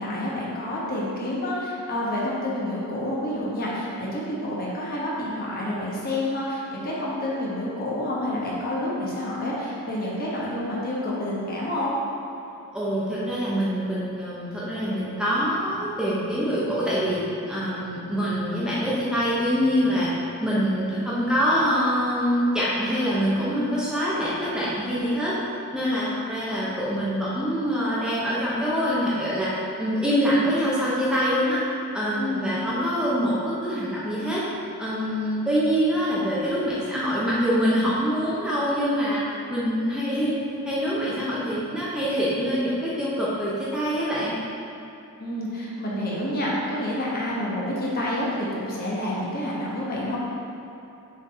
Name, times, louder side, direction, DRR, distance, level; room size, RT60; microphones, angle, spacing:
voice 1, 0.0-11.9 25.9-26.1 32.1-32.4 39.4-39.7 45.2-50.2, left 1 dB, 40° left, -6 dB, 1.2 m, -28 dB
voice 2, 12.7-20.1 20.4-25.4 25.7-29.5 29.8-31.6 31.9-34.4 34.8-39.2 39.5-40.4 40.6-44.3, equal, 5° right, -9 dB, 0.8 m, -25 dB
6.2 x 4.1 x 4.2 m, 2.9 s
head